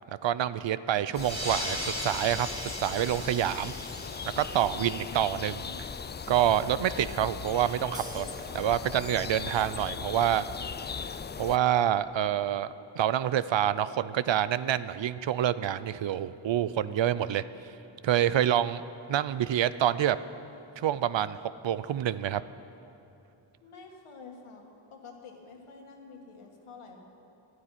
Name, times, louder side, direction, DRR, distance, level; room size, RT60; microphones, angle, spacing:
voice 1, 0.2-2.5 2.8-3.7 4.4-5.9 6.3-8.3 8.5-10.4 11.4-17.4 18.0-18.8 19.1-20.2 20.8-22.4, right 11 dB, 65° right, 15 dB, 0.6 m, -27 dB
sound 1, 1.1-11.6, left 6 dB, 25° left, 0.3 m, -39 dB
sound 2, 1.1-6.2, equal, 30° right, 3.0 m, -38 dB
voice 2, 4.7-5.8 23.6-27.0, left 4 dB, 85° left, 1 dB, 1.8 m, -49 dB
sound 3, 7.9-15.1, equal, 10° right, 2.7 m, -50 dB
11.5 x 9.6 x 9.2 m, 2.7 s
cardioid pair, 40°, 49 cm